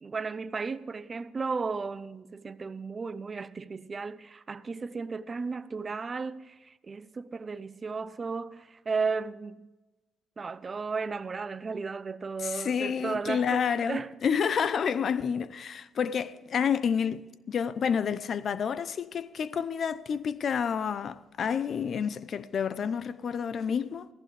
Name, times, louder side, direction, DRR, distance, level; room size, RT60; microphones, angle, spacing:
voice 1, 0.0-9.7 10.4-14.4, right 4 dB, 35° right, 0.6 m, -34 dB
voice 2, 12.4-24.1, left 7 dB, 55° left, 0.6 m, -29 dB
15.5 x 15.0 x 3.4 m
cardioid pair, 90°, 0 cm